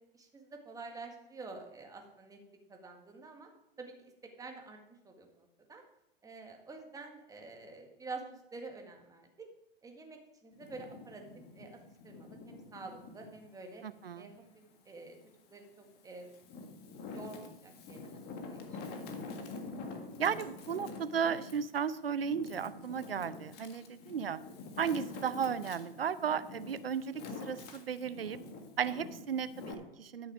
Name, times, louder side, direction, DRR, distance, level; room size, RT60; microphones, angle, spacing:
voice 1, 0.1-2.4 2.7-3.5 3.8-4.8 5.0-5.8 6.2-9.5 9.8-11.2 11.5-11.8 12.0-13.8 14.1-14.4 14.8-15.2 15.5-16.3 17.1-19.0, right 3 dB, 10° right, 2 dB, 1.8 m, -48 dB
Wind, 10.5-13.4 13.9-15.2 15.8-29.7, left 3 dB, 35° left, 1.7 m, -47 dB
voice 2, 13.8-14.3 20.2-24.4 24.8-27.1 27.4-28.4 28.8-30.3, right 7 dB, 80° right, 15 dB, 0.7 m, -34 dB
12.0 x 6.5 x 5.0 m, 0.83 s
figure-of-eight pair, 110°, 29 cm